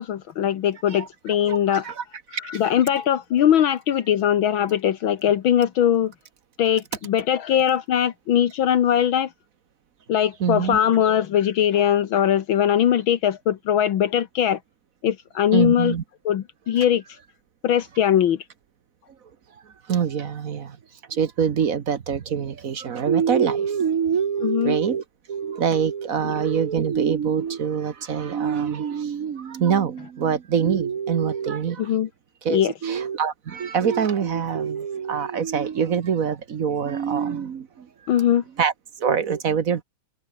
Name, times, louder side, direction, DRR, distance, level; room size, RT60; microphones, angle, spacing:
voice 1, 0.0-1.8 2.5-6.1 6.6-9.3 10.1-14.6 15.0-15.9 16.3-17.0 17.6-18.4 24.4-24.8 31.8-32.1 32.5-32.7 38.1-38.4, left 10 dB, 75° left, 1.9 m, -21 dB
voice 2, 0.9-2.0 2.3-2.6 10.4-10.8 15.5-16.0 16.8-16.9 19.9-20.8 21.1-31.9 32.4-37.9 38.6-38.7 39.0-39.8, right 7 dB, 50° right, 1.3 m, -24 dB
omnidirectional pair, 2.2 m